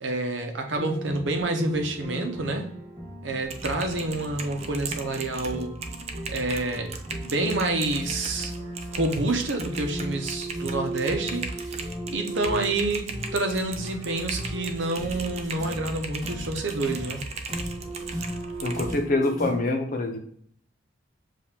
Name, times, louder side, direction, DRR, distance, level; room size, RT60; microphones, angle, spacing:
voice 1, 0.0-2.7 3.2-5.8 6.3-6.9 7.2-8.5 8.9-17.2, right 2 dB, 85° right, 5 dB, 0.8 m, -28 dB
sound 1, 0.7-19.6, right 1 dB, 20° right, 1.3 m, -37 dB
Typing, 3.4-19.0, right 3 dB, 35° right, 0.5 m, -37 dB
voice 2, 18.6-20.2, left 2 dB, 50° left, 3 dB, 0.8 m, -25 dB
6.9 x 2.5 x 2.9 m, 0.62 s
head